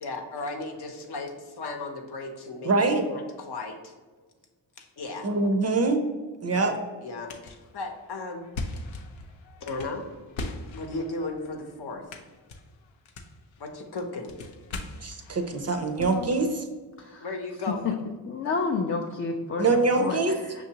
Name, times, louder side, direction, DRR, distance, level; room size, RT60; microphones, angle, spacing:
voice 1, 0.0-2.7 3.0-3.9 4.8-5.3 6.5-6.7 7.0-8.5 9.6-10.0 10.7-12.0 13.6-14.3 17.2-18.0, left 3 dB, 55° left, 3 dB, 0.8 m, -35 dB
voice 2, 2.6-3.0 5.2-6.0 6.4-6.7 15.0-16.7 19.6-20.4, right 3 dB, 35° right, 6 dB, 0.5 m, -24 dB
sound 1, 7.2-16.5, left 2 dB, 85° left, 0.6 m, -41 dB
voice 3, 18.3-20.6, left 4 dB, 30° left, 3 dB, 0.4 m, -30 dB
5.7 x 2.6 x 2.8 m, 1.4 s
cardioid pair, 55°, 47 cm